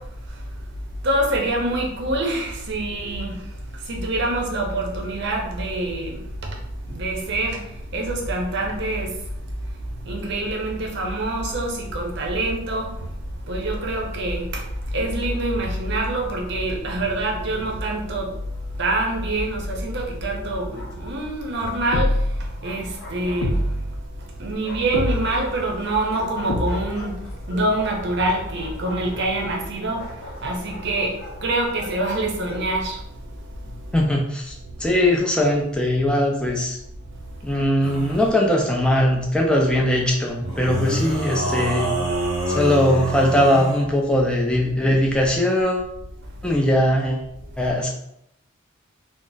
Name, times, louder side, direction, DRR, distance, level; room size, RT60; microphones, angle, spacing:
voice 1, 1.0-3.4 3.9-6.2 6.9-7.6 7.9-9.1 10.0-12.9 13.5-14.6 14.9-18.3 18.8-22.1 22.6-23.6 24.4-27.2 27.5-30.0 30.4-31.1 31.4-33.0, right 2 dB, 55° right, 0 dB, 0.6 m, -25 dB
Bark, 20.5-21.4 22.3-23.9 24.6-32.7, left 1 dB, 45° left, 0.7 m, -41 dB
sound 1, 21.9-22.5 23.4-24.0 24.9-25.5 26.5-27.1, left 1 dB, 90° left, 0.4 m, -24 dB
voice 2, 33.9-36.8 37.4-41.9 42.5-45.9 46.4-47.3 47.6-47.9, left 1 dB, 5° left, -1 dB, 0.4 m, -20 dB
sound 2, 37.8-38.3 40.4-43.9, right 1 dB, 30° right, 0.8 m, -27 dB
2.4 x 2.0 x 3.8 m, 0.78 s
head